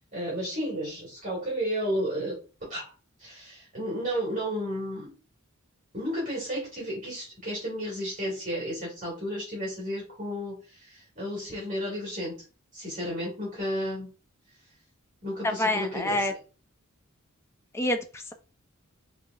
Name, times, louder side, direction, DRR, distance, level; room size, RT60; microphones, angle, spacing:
voice 1, 0.1-2.4 2.7-2.9 3.2-5.1 5.9-12.4 12.7-14.1 15.2-16.3, equal, 35° right, -5 dB, 1.8 m, -32 dB
voice 2, 15.4-16.3 17.7-18.3, left 1 dB, 10° left, 6 dB, 0.4 m, -27 dB
4.8 x 2.6 x 2.3 m, 0.34 s
head